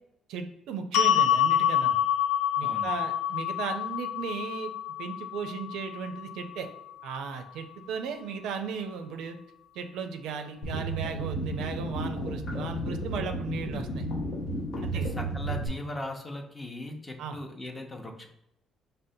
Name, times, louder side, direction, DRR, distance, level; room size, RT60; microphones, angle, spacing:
voice 1, 0.3-2.0 2.6-4.7 5.0-6.7 7.0-9.4 9.7-14.0 14.8-15.1 17.2-17.4, right 6 dB, 80° right, 6 dB, 0.4 m, -36 dB
sound 1, 0.9-7.2, left 10 dB, 85° left, 0.3 m, -27 dB
sound 2, 10.6-15.7, right 1 dB, 55° left, 0.7 m, -33 dB
voice 2, 14.8-18.3, left 1 dB, 20° left, 2 dB, 0.6 m, -39 dB
5.1 x 2.1 x 2.7 m, 0.82 s
cardioid pair, 100°, 0 cm